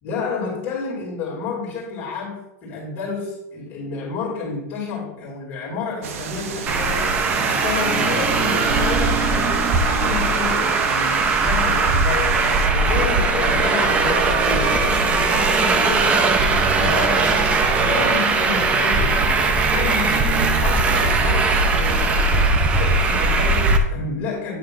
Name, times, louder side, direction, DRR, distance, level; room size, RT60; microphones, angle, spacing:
voice 1, 0.0-7.0 7.3-12.4 12.7-17.5 17.8-19.2 19.6-24.6, left 4 dB, 25° left, -5 dB, 2.4 m, -30 dB
sound 1, 6.0-12.7, right 7 dB, 60° right, 0.8 m, -32 dB
Traffic noise roadway noise, 6.7-23.8, right 3 dB, 15° right, 0.5 m, -19 dB
8.9 x 3.2 x 6.1 m, 0.84 s
supercardioid pair, 170°, 9 cm